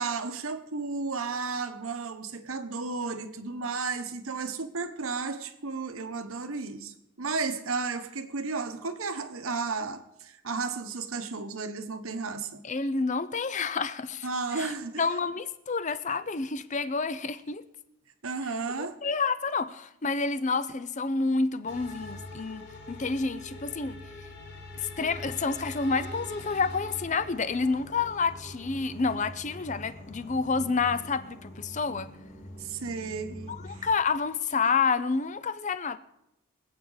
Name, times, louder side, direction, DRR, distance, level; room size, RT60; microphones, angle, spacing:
voice 1, 0.0-12.6 14.2-15.0 18.2-19.0 32.6-33.8, right 4 dB, 75° right, 1.1 m, -33 dB
voice 2, 12.6-14.3 14.6-14.7 15.0-17.6 19.0-24.0 24.8-32.1 33.6-36.0, left 4 dB, 35° left, 0.6 m, -29 dB
sound 1, 21.7-33.9, left 1 dB, 50° left, 3.3 m, -43 dB
25.0 x 8.5 x 4.0 m
head